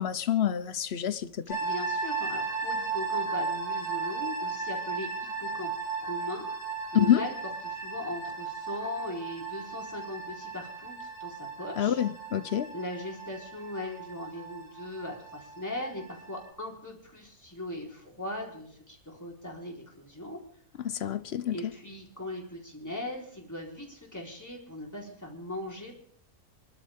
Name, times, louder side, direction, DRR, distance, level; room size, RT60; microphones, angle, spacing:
voice 1, 0.0-1.6 6.9-7.2 11.8-12.7 20.8-21.7, left 10 dB, 55° left, 0.9 m, -27 dB
sound 1, 1.5-16.5, right 4 dB, 85° left, 4.0 m, -36 dB
voice 2, 1.6-5.7 6.0-7.3 7.6-12.0 12.7-20.4 21.5-25.9, left 1 dB, 10° left, 4.1 m, -39 dB
27.0 x 12.5 x 3.7 m
omnidirectional pair, 1.5 m